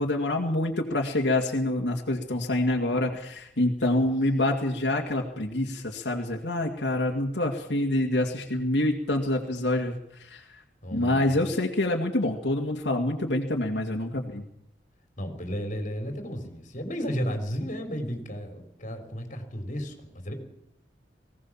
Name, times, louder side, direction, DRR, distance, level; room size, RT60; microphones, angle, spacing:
voice 1, 0.0-10.5 10.9-14.5, left 1 dB, 75° left, 0 dB, 2.3 m, -26 dB
voice 2, 10.8-11.4 15.2-20.3, equal, 45° left, 5 dB, 3.8 m, -33 dB
20.0 x 17.5 x 7.4 m, 0.75 s
head